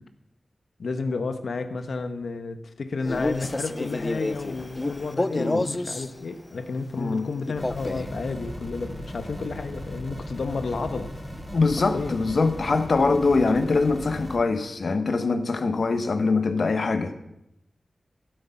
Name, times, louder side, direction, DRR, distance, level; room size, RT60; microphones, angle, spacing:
voice 1, 0.8-11.1 11.9-12.2 14.9-15.0, left 4 dB, 85° left, 9 dB, 0.9 m, -31 dB
Male speech man speaking, 3.0-6.1 7.5-8.1, left 2 dB, 25° left, 0.4 m, -29 dB
voice 2, 7.0-7.3 11.5-17.1, left 3 dB, 70° left, 8 dB, 1.1 m, -23 dB
sound 1, 7.5-14.4, equal, ahead, 3.3 m, -38 dB
12.5 x 8.0 x 5.7 m, 0.81 s
wide cardioid pair, 75°, 0 cm